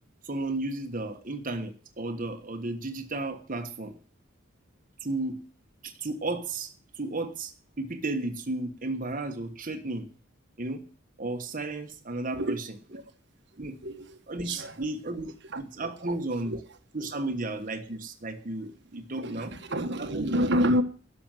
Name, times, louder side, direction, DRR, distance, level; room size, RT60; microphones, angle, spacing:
voice 1, 0.2-4.0 5.0-5.4 5.8-10.1 10.6-10.8 11.2-12.6 13.6-13.8 14.3-16.6 16.9-19.5 20.0-20.3, right 2 dB, 45° right, 1.4 m, -33 dB
voice 2, 13.8-14.2 14.4-14.8 15.4-15.6 16.0-16.6 19.1-20.8, equal, 60° right, 1.5 m, -29 dB
12.5 x 7.0 x 9.1 m
head